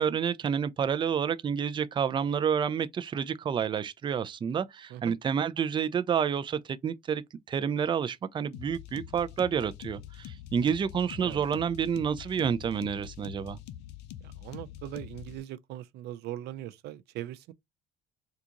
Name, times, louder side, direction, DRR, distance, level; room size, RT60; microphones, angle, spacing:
voice 1, 0.0-13.6, right 7 dB, 30° right, 0.4 m, -29 dB
sound 1, 8.5-15.4, left 12 dB, 85° left, 0.6 m, -45 dB
voice 2, 14.2-17.5, right 13 dB, 80° right, 0.5 m, -40 dB
3.7 x 2.4 x 2.8 m
cardioid pair, 110°, 17 cm